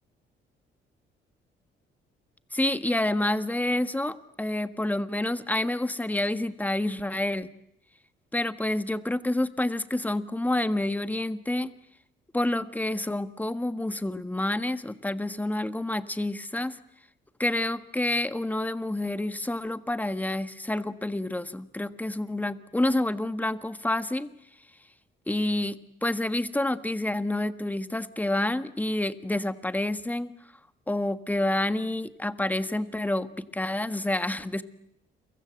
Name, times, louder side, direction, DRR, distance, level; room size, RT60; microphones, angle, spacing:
voice 1, 2.5-7.5 8.3-11.7 12.3-16.8 17.4-24.3 25.3-30.3 30.9-34.6, left 1 dB, 10° left, 12 dB, 1.4 m, -28 dB
29.5 x 23.5 x 7.8 m, 0.78 s
cardioid pair, 90°, 20 cm